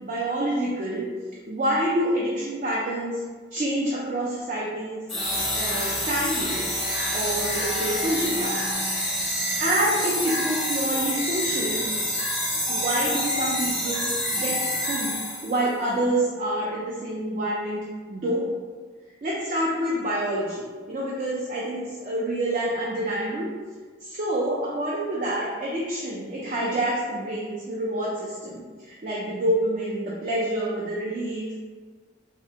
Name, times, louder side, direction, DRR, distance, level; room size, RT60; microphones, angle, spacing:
voice 1, 0.0-1.1 1.5-3.2 3.5-5.0 5.5-6.6 7.1-8.6 9.6-11.8 12.7-14.6 14.9-15.2 15.4-18.5 19.2-23.5 24.0-31.6, right 1 dB, 40° right, -5 dB, 0.4 m, -27 dB
sound 1, 5.1-15.6, equal, ahead, 0.6 m, -27 dB
3.2 x 2.1 x 2.7 m, 1.5 s
head